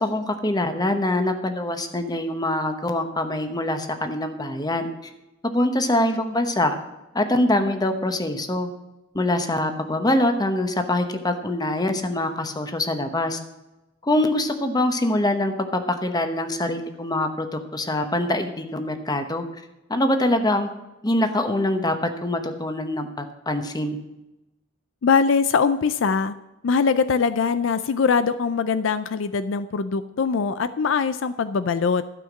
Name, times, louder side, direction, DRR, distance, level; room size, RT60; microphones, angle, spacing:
voice 1, 0.0-4.9 5.5-6.7 7.1-8.7 9.1-13.4 14.0-19.4 19.9-20.7 21.0-24.0, left 1 dB, 20° left, 7 dB, 1.0 m, -24 dB
voice 2, 25.0-26.3 26.6-32.0, left 5 dB, 65° left, 13 dB, 0.4 m, -22 dB
12.5 x 5.7 x 7.3 m, 0.98 s
head